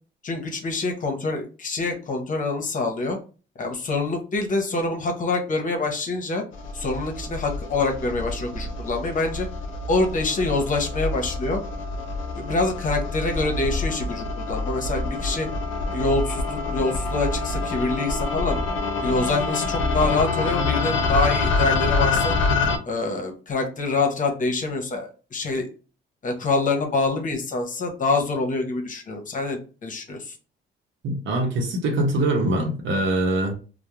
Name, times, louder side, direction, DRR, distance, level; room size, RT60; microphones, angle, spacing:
voice 1, 0.2-3.2 3.6-6.4 6.7-9.5 9.9-11.6 12.4-15.5 15.9-18.6 19.0-22.4 22.8-25.7 26.2-30.4, left 3 dB, 40° left, 0.7 m, -26 dB
sound 1, 6.5-22.8, left 3 dB, 80° left, 0.5 m, -26 dB
voice 2, 31.0-33.5, right 1 dB, 75° right, 0.8 m, -23 dB
2.3 x 2.0 x 2.9 m
cardioid pair, 90°, 20 cm